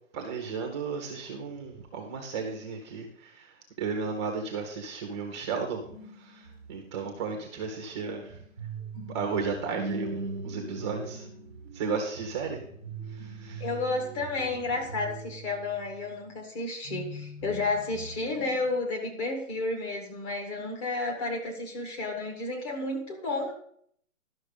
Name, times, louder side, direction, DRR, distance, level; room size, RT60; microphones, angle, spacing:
voice 1, 0.1-3.4 3.8-5.8 6.7-8.3 9.1-11.3 11.7-12.6 13.4-13.6, right 5 dB, 20° right, 2 dB, 1.0 m, -34 dB
sound 1, 5.9-16.3 16.8-18.8, right 3 dB, 5° left, 0.4 m, -41 dB
voice 2, 13.6-23.5, left 3 dB, 25° left, 2 dB, 1.9 m, -31 dB
12.0 x 6.0 x 5.4 m, 0.64 s
hypercardioid pair, 155°, 40 cm